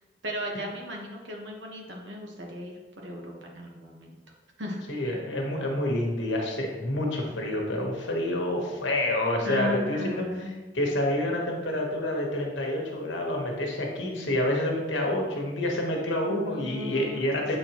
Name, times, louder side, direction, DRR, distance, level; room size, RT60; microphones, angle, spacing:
voice 1, 0.2-4.1 4.6-4.8 9.4-10.5 16.2-17.2, equal, 70° right, 0 dB, 1.3 m, -35 dB
voice 2, 4.9-10.2 10.7-17.6, left 1 dB, 75° left, 0 dB, 1.3 m, -28 dB
7.5 x 4.4 x 3.0 m, 1.2 s
head